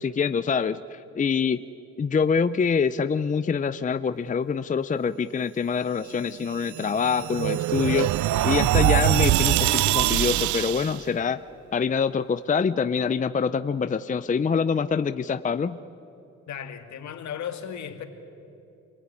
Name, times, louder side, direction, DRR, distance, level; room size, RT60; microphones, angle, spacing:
voice 1, 0.0-1.6 2.0-8.1 8.4-11.4 11.7-15.8, left 6 dB, 25° left, 0.6 m, -25 dB
sound 1, 6.5-11.0, right 14 dB, 75° right, 0.6 m, -23 dB
voice 2, 16.5-18.0, left 8 dB, 65° left, 2.4 m, -35 dB
27.5 x 18.5 x 9.8 m
cardioid pair, 90°, 30 cm